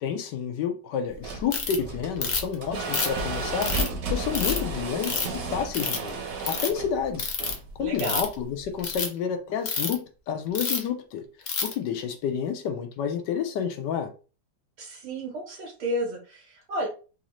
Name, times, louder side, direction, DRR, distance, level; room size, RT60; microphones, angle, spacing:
voice 1, 0.0-6.2 6.5-7.3 7.8-11.3 11.6-14.1, left 7 dB, 75° left, 1.2 m, -30 dB
sound 1, 1.1-9.0, right 2 dB, 60° right, 1.0 m, -33 dB
Ratchet pawl, 1.5-1.8 2.2-2.5 2.9-3.9 4.3-4.6 5.0-5.4 5.7-6.1 6.4-6.7 7.2-7.5 7.9-8.3 8.8-9.1 9.7-9.9 10.5-10.9 11.5-11.7, left 5 dB, 60° left, 0.6 m, -28 dB
voice 2, 7.8-8.3 14.8-16.9, right 1 dB, 85° right, 1.9 m, -31 dB
4.0 x 2.6 x 3.0 m
omnidirectional pair, 2.0 m